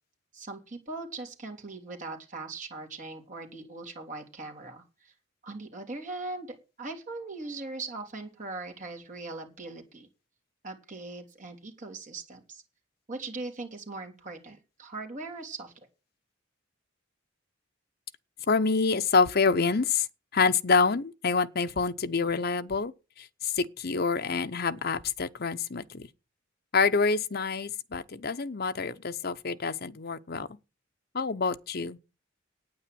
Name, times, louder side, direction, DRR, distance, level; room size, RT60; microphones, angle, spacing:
voice 1, 0.3-5.1 5.4-10.1 10.6-12.6 13.1-15.7, right 3 dB, 40° right, 3.3 m, -40 dB
voice 2, 18.5-20.1 20.3-22.9 23.2-26.1 26.7-30.5 31.1-32.0, left 4 dB, 50° left, 0.8 m, -27 dB
9.6 x 9.2 x 7.8 m
head